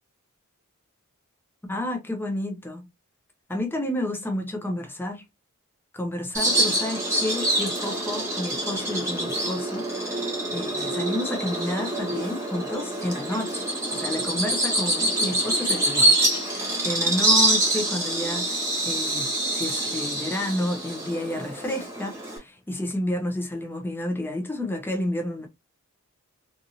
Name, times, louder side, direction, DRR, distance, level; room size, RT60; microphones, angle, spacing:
voice 1, 1.7-2.9 3.5-5.2 5.9-13.6 13.9-25.5, left 1 dB, 10° left, 0.6 m, -30 dB
Bird vocalization bird call bird song, 6.3-22.4, right 1 dB, 15° right, 1.1 m, -25 dB
2.7 x 2.5 x 2.8 m
head